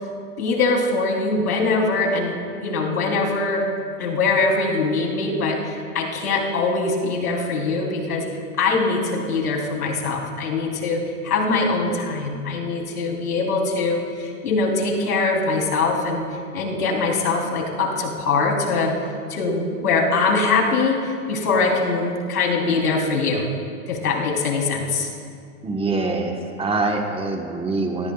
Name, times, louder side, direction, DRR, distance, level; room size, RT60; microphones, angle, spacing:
voice 1, 0.4-3.6 4.0-8.3 8.6-16.2 16.5-18.9 19.3-23.5 23.9-25.1, left 3 dB, 90° left, -1 dB, 3.6 m, -22 dB
voice 2, 25.6-28.1, right 3 dB, 15° right, 2 dB, 1.2 m, -24 dB
24.0 x 18.5 x 2.4 m, 2.3 s
hypercardioid pair, 130°, 44 cm